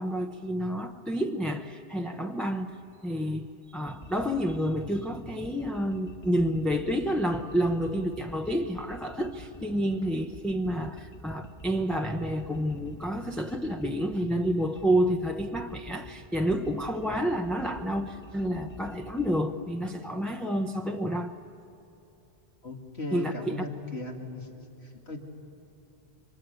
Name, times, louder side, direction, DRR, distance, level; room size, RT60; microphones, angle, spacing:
voice 1, 0.0-2.7 3.0-21.3 23.1-23.6, equal, ahead, 0.7 m, -29 dB
sound 1, 3.8-19.4, equal, 30° left, 1.6 m, -48 dB
voice 2, 22.6-24.5 24.8-25.2, left 2 dB, 80° left, 2.9 m, -37 dB
28.5 x 24.5 x 8.3 m
omnidirectional pair, 1.1 m